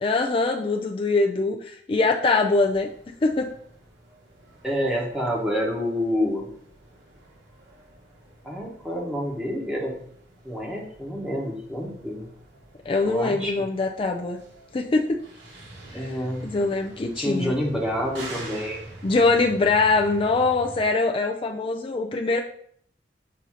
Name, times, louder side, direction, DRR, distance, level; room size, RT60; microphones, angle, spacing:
voice 1, 0.0-2.9 3.2-3.5 12.9-14.4 14.7-15.2 15.9-16.1 16.4-17.5 19.0-22.4, left 3 dB, 30° left, 2 dB, 0.4 m, -23 dB
sound 1, 2.5-20.8, right 1 dB, 85° right, 1.9 m, -46 dB
voice 2, 4.6-6.5 8.4-10.0 10.4-12.3 13.0-13.7 15.9-16.4 17.2-18.8, equal, 5° right, -2 dB, 1.0 m, -28 dB
6.3 x 2.7 x 5.5 m, 0.64 s
head